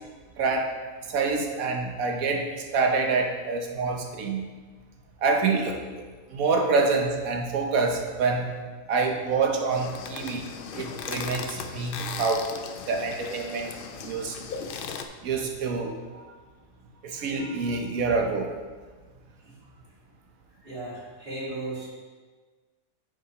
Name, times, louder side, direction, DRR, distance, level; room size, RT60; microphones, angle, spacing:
voice 1, 0.4-0.7 1.1-4.5 5.2-5.8 6.3-8.5 8.9-10.5 10.7-12.5 12.9-13.7 14.0-14.3 15.2-16.3 17.0-18.5, right 4 dB, 80° right, 2 dB, 1.3 m, -26 dB
sound 1, 9.7-15.1, left 6 dB, 65° left, 0.5 m, -37 dB
voice 2, 20.6-21.9, right 2 dB, 40° right, -7 dB, 2.4 m, -36 dB
8.7 x 6.5 x 3.0 m, 1.4 s
omnidirectional pair, 1.5 m